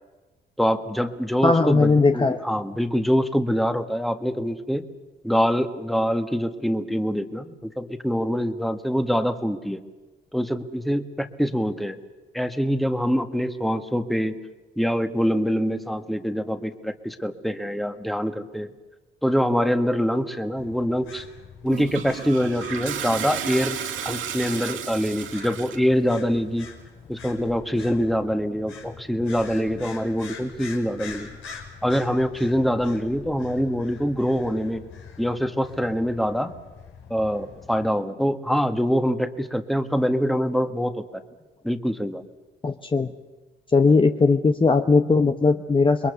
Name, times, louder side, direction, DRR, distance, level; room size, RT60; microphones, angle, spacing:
voice 1, 0.6-4.8 5.2-9.8 10.3-12.0 12.3-14.3 14.8-18.7 19.2-21.2 21.6-23.8 24.0-26.7 27.1-31.3 31.8-34.8 35.2-36.5 37.1-41.0 41.6-42.2, equal, ahead, 8 dB, 1.7 m, -24 dB
voice 2, 1.4-2.4 42.6-43.1 43.7-46.1, left 4 dB, 25° left, 6 dB, 1.0 m, -19 dB
sound 1, 20.6-37.9, left 6 dB, 85° left, 5.2 m, -44 dB
Toilet flush, 21.7-25.9, right 9 dB, 80° right, 2.1 m, -33 dB
28.0 x 22.0 x 6.9 m, 1.2 s
cardioid pair, 90°, 20 cm